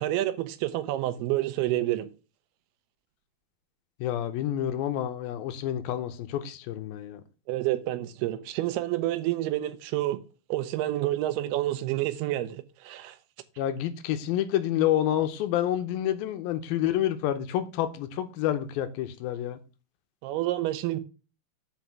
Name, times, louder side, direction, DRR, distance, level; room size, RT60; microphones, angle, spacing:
voice 1, 0.0-2.1 7.5-10.2 10.5-13.2 20.2-21.0, right 15 dB, 80° right, 2.6 m, -28 dB
voice 2, 4.0-7.2 13.6-19.6, left 11 dB, 80° left, 2.3 m, -28 dB
6.1 x 5.3 x 5.8 m
omnidirectional pair, 4.7 m